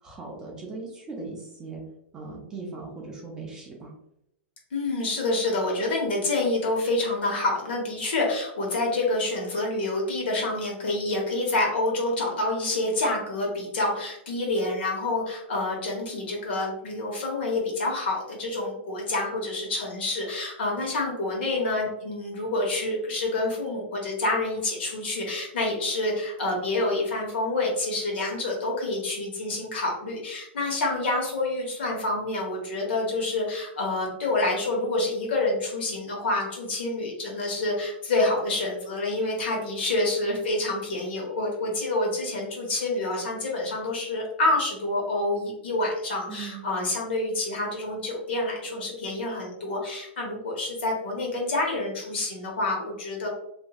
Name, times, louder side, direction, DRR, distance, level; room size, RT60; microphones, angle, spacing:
voice 1, 0.0-1.8 2.1-3.9 46.3-46.6, right 3 dB, 10° right, -2 dB, 0.3 m, -39 dB
voice 2, 4.7-53.3, left 2 dB, 65° left, -1 dB, 1.1 m, -27 dB
2.9 x 2.5 x 2.3 m, 0.78 s
supercardioid pair, 175°, 6 cm